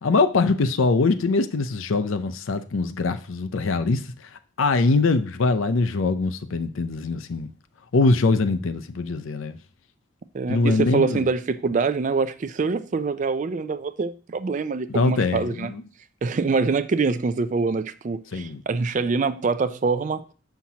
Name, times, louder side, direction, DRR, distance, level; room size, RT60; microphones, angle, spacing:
voice 1, 0.0-4.1 4.6-7.5 7.9-9.6 10.5-11.2 14.9-15.8 18.3-18.6, left 3 dB, 75° left, 0.5 m, -22 dB
voice 2, 10.3-15.7 16.2-20.2, right 4 dB, 35° right, 0.3 m, -25 dB
7.1 x 5.8 x 2.8 m
head